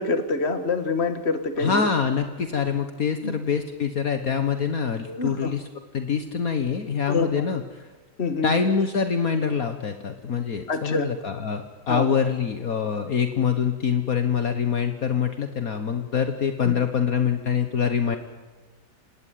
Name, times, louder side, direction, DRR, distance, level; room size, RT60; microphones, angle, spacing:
voice 1, 0.0-1.9 3.2-3.4 5.1-5.5 7.1-7.4 8.2-8.5 10.7-11.1 11.9-12.1 16.6-16.7, left 4 dB, 40° left, 10 dB, 2.1 m, -26 dB
voice 2, 1.6-5.6 5.9-7.9 8.4-18.2, left 6 dB, 55° left, 7 dB, 1.9 m, -25 dB
27.0 x 19.0 x 9.5 m, 1.3 s
omnidirectional pair, 1.8 m